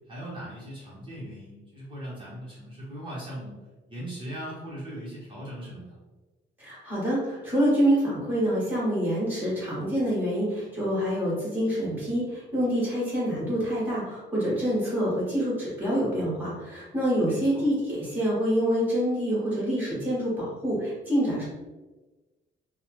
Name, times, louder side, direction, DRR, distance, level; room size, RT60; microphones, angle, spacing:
voice 1, 0.1-3.6 3.9-6.0 17.2-17.6, equal, 25° right, -8 dB, 0.8 m, -39 dB
voice 2, 6.6-21.4, equal, 10° right, -9 dB, 1.4 m, -26 dB
3.0 x 2.0 x 3.0 m, 1.2 s
cardioid pair, 160°, 20 cm